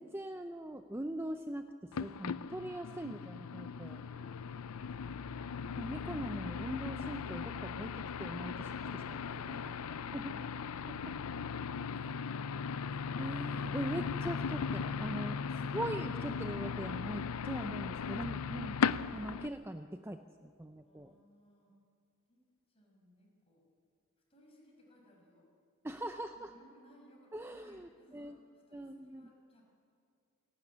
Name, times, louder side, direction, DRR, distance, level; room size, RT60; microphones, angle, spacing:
voice 1, 0.0-1.7 2.0-4.0 5.8-7.9 8.2-9.7 10.1-10.5 10.9-11.1 13.2-15.4 15.7-18.8 19.1-21.1 25.8-26.5 27.3-28.4 28.7-29.2, right 1 dB, 10° right, 7 dB, 0.6 m, -41 dB
sound 1, 1.9-19.5, left 6 dB, 80° left, 0.5 m, -38 dB
voice 2, 2.5-2.9 4.0-5.0 9.2-10.2 11.1-13.4 15.0-15.5 20.8-21.7 22.3-22.4 22.7-23.6 24.3-25.5 26.4-29.6, equal, 25° left, -1 dB, 6.0 m, -63 dB
sound 2, 3.0-19.5, equal, 50° right, 5.5 m, -71 dB
28.5 x 12.5 x 9.9 m, 2.3 s
head